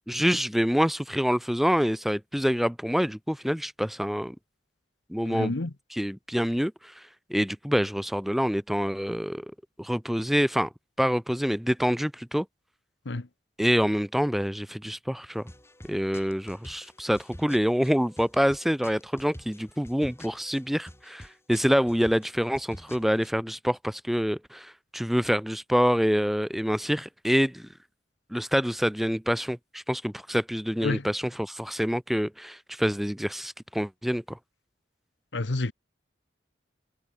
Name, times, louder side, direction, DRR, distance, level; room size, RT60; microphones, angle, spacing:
voice 1, 0.1-4.4 5.1-5.5 5.9-7.0 7.3-9.5 9.8-10.7 11.0-12.5 13.6-15.4 15.9-27.7 28.3-34.4, equal, ahead, 0.6 m, -26 dB
voice 2, 5.2-5.7 13.0-13.3 30.8-31.1 35.3-35.7, left 2 dB, 70° left, 1.1 m, -29 dB
sound 1, 15.3-23.3, left 1 dB, 15° left, 5.9 m, -48 dB
head